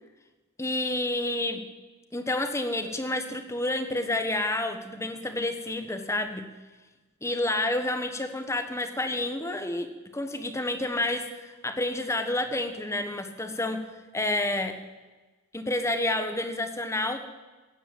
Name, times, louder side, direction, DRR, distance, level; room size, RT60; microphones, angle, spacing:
voice 1, 0.6-1.6 2.1-6.5 7.2-9.9 10.1-14.8 15.5-17.2, left 2 dB, 15° left, 8 dB, 1.3 m, -29 dB
16.0 x 10.0 x 7.6 m, 1.2 s
head